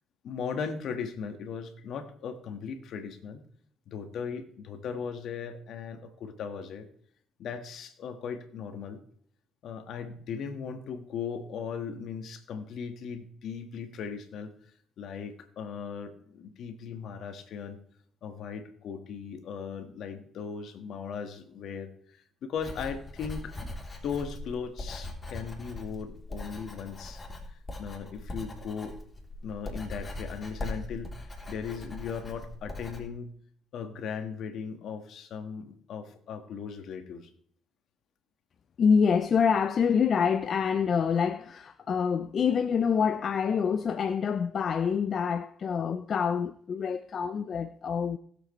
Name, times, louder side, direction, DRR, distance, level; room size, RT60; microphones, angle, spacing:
voice 1, 0.2-3.5 3.9-6.9 7.4-9.0 9.6-14.5 15.0-17.8 18.2-23.8 24.0-28.9 29.4-33.3 33.7-37.3, left 6 dB, 70° left, 1.7 m, -38 dB
Writing, 22.6-33.0, left 1 dB, 25° left, 3.4 m, -40 dB
voice 2, 38.8-48.2, left 6 dB, 55° left, 0.6 m, -26 dB
19.5 x 7.9 x 3.2 m
supercardioid pair, 60°, 0 cm